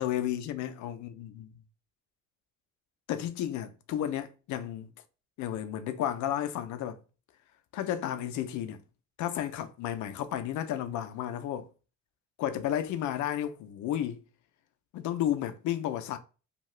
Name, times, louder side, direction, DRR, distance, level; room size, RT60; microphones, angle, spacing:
voice 1, 0.0-1.5 3.1-4.9 5.4-7.0 7.7-8.8 9.2-11.7 12.4-14.2 14.9-16.2, left 11 dB, 70° left, 0.5 m, -32 dB
2.7 x 2.3 x 3.1 m
cardioid pair, 110°, 30 cm